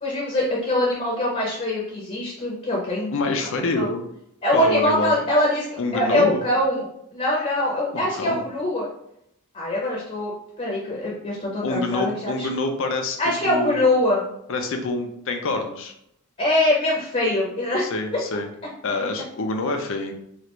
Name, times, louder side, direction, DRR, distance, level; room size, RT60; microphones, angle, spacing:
voice 1, 0.0-3.1 3.7-3.9 4.4-5.7 5.9-6.9 7.1-8.9 9.5-10.3 10.6-12.5 13.2-14.3 16.4-17.9, left 1 dB, 30° left, -4 dB, 0.7 m, -23 dB
voice 2, 3.1-4.1 4.5-5.2 5.8-6.4 7.9-8.5 11.6-13.2 13.4-13.8 14.5-15.9 17.8-18.5 18.8-20.1, left 2 dB, 65° left, 5 dB, 0.5 m, -26 dB
3.1 x 2.4 x 3.0 m, 0.75 s
head